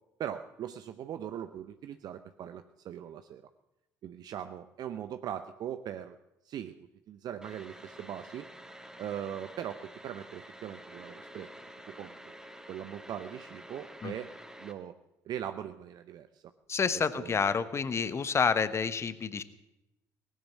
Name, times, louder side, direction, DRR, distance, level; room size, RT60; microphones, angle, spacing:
voice 1, 0.2-3.4 4.0-6.2 6.4-6.7 7.1-8.5 9.0-11.5 12.0-12.4 12.7-14.3 14.6-14.9 15.2-16.4 17.1-17.4, right 10 dB, 50° right, 9 dB, 0.7 m, -40 dB
sound 1, 7.4-14.7, equal, 5° right, 2.1 m, -49 dB
voice 2, 16.7-19.4, left 6 dB, 30° left, 13 dB, 1.1 m, -29 dB
18.5 x 10.5 x 7.4 m, 0.91 s
figure-of-eight pair, 55°, 9 cm